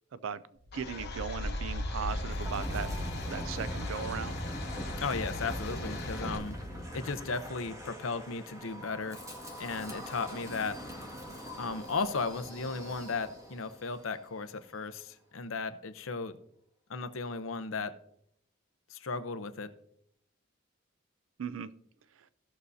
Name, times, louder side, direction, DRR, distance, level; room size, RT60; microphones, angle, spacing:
voice 1, 0.1-0.4 0.7-2.9 3.2-4.4 21.4-21.7, right 6 dB, 80° right, 15 dB, 0.4 m, -37 dB
Wind, 0.6-13.6, equal, 15° right, 1.9 m, -39 dB
Domestic sounds home sounds, 0.7-6.4, left 5 dB, 55° left, 1.0 m, -44 dB
voice 2, 5.0-6.6 6.9-9.2 9.6-10.8 11.6-16.3 16.9-17.9 18.9-19.7, left 4 dB, 85° left, 11 dB, 0.8 m, -35 dB
16.5 x 6.4 x 2.7 m, 0.72 s
head